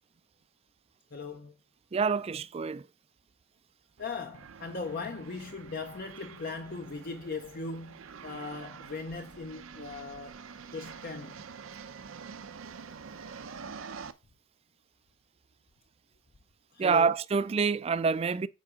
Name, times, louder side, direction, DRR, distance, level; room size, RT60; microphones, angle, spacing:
voice 1, 1.1-1.6 4.0-10.4 10.7-11.4 16.7-17.1, left 4 dB, 45° left, 0.7 m, -39 dB
voice 2, 1.9-2.9 16.8-18.5, right 5 dB, 30° right, 0.3 m, -27 dB
sound 1, 4.0-14.1, right 5 dB, 70° right, 0.6 m, -47 dB
7.5 x 4.7 x 4.8 m
head